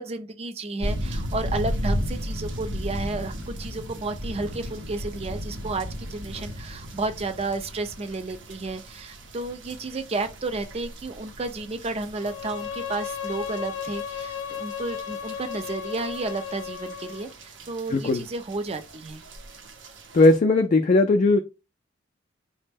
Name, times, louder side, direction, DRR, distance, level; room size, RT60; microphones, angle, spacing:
voice 1, 0.0-19.2, right 3 dB, 35° right, 0.5 m, -32 dB
sound 1, 0.8-20.4, equal, 70° right, 0.7 m, -36 dB
Bowed string instrument, 12.2-17.3, left 8 dB, 85° left, 0.6 m, -35 dB
voice 2, 17.9-18.2 20.1-21.4, left 2 dB, 40° left, 0.4 m, -18 dB
4.1 x 2.1 x 3.4 m
head